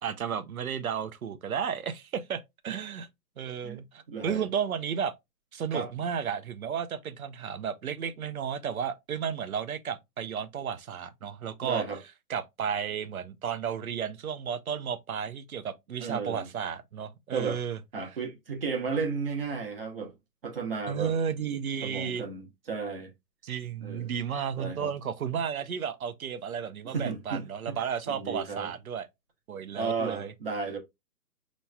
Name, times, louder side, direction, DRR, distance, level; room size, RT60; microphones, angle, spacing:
voice 1, 0.0-3.1 3.4-5.1 5.5-11.8 12.3-17.8 20.9-22.2 23.4-29.1 29.5-30.3, right 7 dB, 60° right, 0.7 m, -33 dB
voice 2, 4.1-4.4 5.7-5.9 11.6-12.0 16.0-16.5 17.3-17.6 17.9-20.1 20.4-21.1 21.8-23.1 23.8-24.1 24.6-24.9 26.8-28.7 29.7-30.8, right 4 dB, 35° right, 1.1 m, -34 dB
5.4 x 3.1 x 2.2 m
hypercardioid pair, 170°, 49 cm